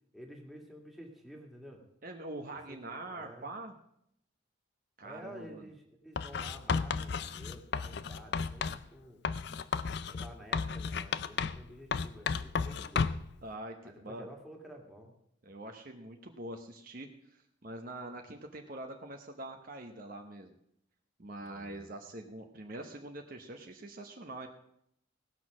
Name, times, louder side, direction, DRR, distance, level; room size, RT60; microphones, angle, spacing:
voice 1, 0.1-1.8 2.7-3.5 5.0-9.2 10.1-13.1 13.8-15.1 21.4-21.9, equal, ahead, -1 dB, 1.9 m, -51 dB
voice 2, 2.0-3.7 5.0-5.6 13.4-14.3 15.4-20.6 21.2-24.5, right 1 dB, 45° right, 4 dB, 0.9 m, -44 dB
Writing, 6.2-8.8 9.2-11.7 11.9-13.3, left 5 dB, 55° left, 0.4 m, -33 dB
17.5 x 6.3 x 6.1 m, 0.74 s
head